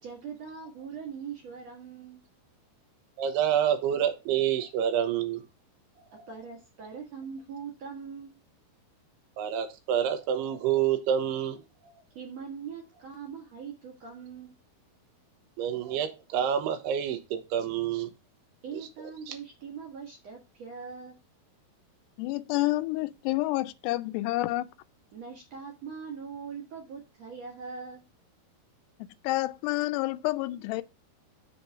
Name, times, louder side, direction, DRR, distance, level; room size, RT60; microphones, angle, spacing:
voice 1, 0.0-2.2 6.3-8.4 12.1-14.6 18.6-21.2 25.1-28.0, right 6 dB, 65° right, 1.7 m, -41 dB
voice 2, 3.2-5.4 9.4-11.6 15.6-18.1 19.3-19.4, right 9 dB, 80° right, 2.9 m, -28 dB
voice 3, 22.2-24.7 29.2-30.8, left 18 dB, 90° left, 2.7 m, -29 dB
6.9 x 3.9 x 5.8 m
omnidirectional pair, 4.7 m